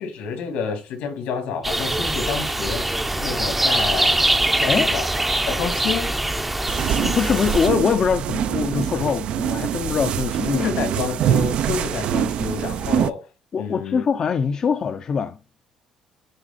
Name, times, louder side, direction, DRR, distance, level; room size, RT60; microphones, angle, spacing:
voice 1, 0.0-2.9 3.2-4.1 4.6-5.1 5.5-6.2 10.5-13.3 13.6-14.0, left 6 dB, 80° left, 2.7 m, -29 dB
sound 1, 1.6-7.7, right 1 dB, 5° right, 0.6 m, -23 dB
sound 2, 6.7-13.1, right 10 dB, 50° right, 0.4 m, -24 dB
voice 2, 7.0-10.7 13.5-15.4, left 6 dB, 30° left, 0.6 m, -23 dB
10.5 x 3.8 x 4.1 m
cardioid pair, 160°, 2 cm